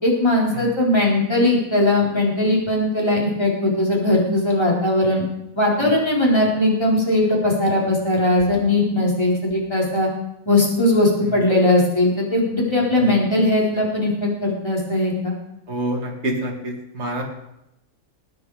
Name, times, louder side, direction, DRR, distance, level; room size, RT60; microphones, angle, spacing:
voice 1, 0.0-5.3 5.6-10.1 10.5-15.3, left 1 dB, 20° left, -4 dB, 4.3 m, -19 dB
voice 2, 15.7-17.2, right 1 dB, 50° right, 0 dB, 2.5 m, -28 dB
21.0 x 9.1 x 4.9 m, 0.85 s
omnidirectional pair, 1.5 m